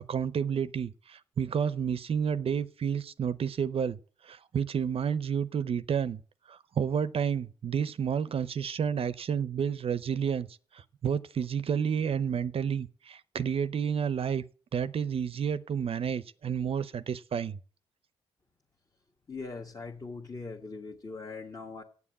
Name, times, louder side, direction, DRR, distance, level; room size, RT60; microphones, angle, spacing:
voice 1, 0.1-4.0 4.2-6.2 6.5-10.5 10.7-14.4 14.7-17.6, right 7 dB, 55° right, 0.6 m, -30 dB
voice 2, 19.3-21.8, left 4 dB, 35° left, 1.5 m, -41 dB
8.2 x 7.2 x 8.6 m
supercardioid pair, 50°, 12 cm